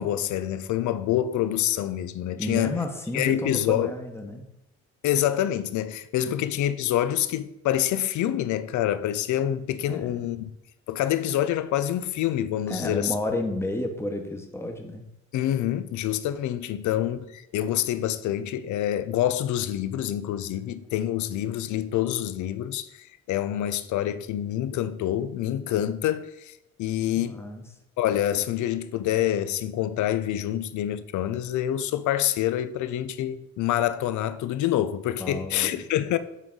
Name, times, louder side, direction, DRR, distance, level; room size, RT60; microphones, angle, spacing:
voice 1, 0.0-2.8 3.1-3.9 5.0-10.5 10.9-13.1 15.3-26.5 26.8-27.4 28.0-36.2, left 12 dB, 75° left, 0.5 m, -26 dB
voice 2, 2.4-4.4 6.2-6.5 9.9-10.1 12.7-15.0 17.2-17.3 27.2-27.6 35.2-35.7, left 1 dB, 10° left, 1.0 m, -31 dB
7.2 x 3.9 x 3.7 m
cardioid pair, 90°, 30 cm